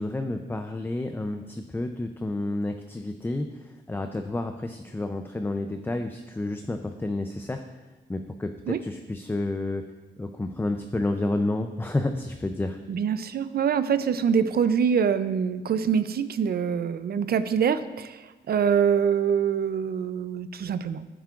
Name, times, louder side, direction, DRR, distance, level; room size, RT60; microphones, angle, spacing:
voice 1, 0.0-7.6 8.1-9.8 10.2-12.8, left 2 dB, 10° left, 6 dB, 0.4 m, -30 dB
voice 2, 12.9-21.1, right 7 dB, 55° right, 12 dB, 0.4 m, -25 dB
14.0 x 7.4 x 2.4 m, 1.2 s
cardioid pair, 110°, 19 cm